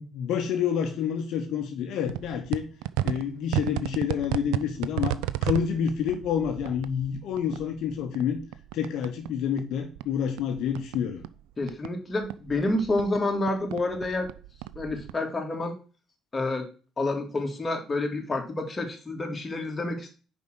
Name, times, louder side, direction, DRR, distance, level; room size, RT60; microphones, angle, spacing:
voice 1, 0.0-2.7 3.0-8.4 8.7-11.2, left 8 dB, 70° left, 4 dB, 1.0 m, -28 dB
sound 1, 2.1-9.3 9.6-11.9 12.2-15.1, right 14 dB, 85° right, 0.4 m, -33 dB
voice 2, 11.6-14.3 14.8-15.7 16.3-16.7 17.0-20.1, left 2 dB, 30° left, 2 dB, 2.4 m, -29 dB
5.4 x 5.1 x 6.3 m, 0.36 s
supercardioid pair, 65°, 0 cm